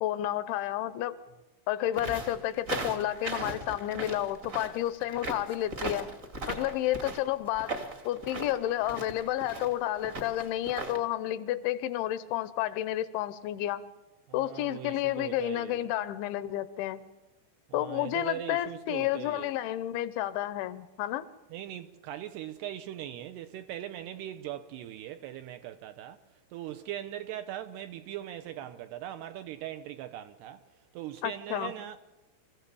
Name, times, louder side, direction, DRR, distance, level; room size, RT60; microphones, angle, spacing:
voice 1, 0.0-1.2 1.7-6.1 6.5-7.7 8.1-13.8 14.3-17.0 17.7-21.3 31.2-31.7, left 13 dB, 80° left, 3.2 m, -31 dB
sound 1, 1.9-11.0, right 2 dB, 35° right, 1.3 m, -38 dB
voice 2, 14.3-15.9 17.7-19.5 21.5-26.2 26.5-30.6 30.9-32.0, right 12 dB, 75° right, 2.6 m, -40 dB
25.5 x 15.0 x 8.5 m
omnidirectional pair, 5.4 m